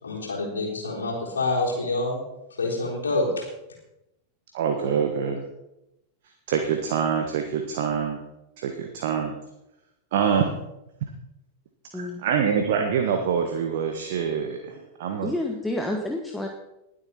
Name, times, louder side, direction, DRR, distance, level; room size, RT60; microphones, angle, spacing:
voice 1, 0.0-2.2 2.6-3.5, left 2 dB, 70° left, -2 dB, 3.9 m, -27 dB
voice 2, 4.5-5.4 6.5-8.2 8.6-9.3 10.1-10.5 11.9-15.3, right 7 dB, 55° right, 5 dB, 1.3 m, -25 dB
voice 3, 11.9-12.3 15.2-16.5, left 1 dB, 5° left, 2 dB, 1.2 m, -29 dB
20.0 x 8.1 x 4.2 m, 0.90 s
figure-of-eight pair, 90°, 0 cm